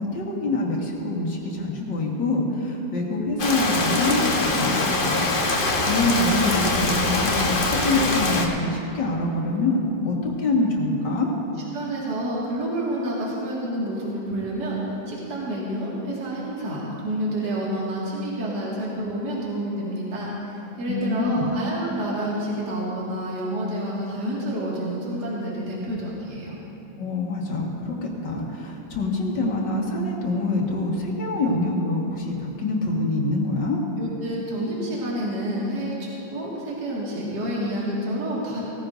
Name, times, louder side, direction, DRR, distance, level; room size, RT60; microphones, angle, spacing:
voice 1, 0.0-5.6 5.9-11.3 20.9-21.6 27.0-33.8, left 2 dB, 70° left, -2 dB, 2.3 m, -25 dB
Rain, 3.4-8.5, left 2 dB, 35° left, 0.9 m, -23 dB
voice 2, 11.7-14.8 15.1-20.3 20.8-26.6 34.0-38.6, right 1 dB, 60° right, -6 dB, 2.6 m, -29 dB
18.0 x 15.0 x 2.6 m, 2.9 s
omnidirectional pair, 2.1 m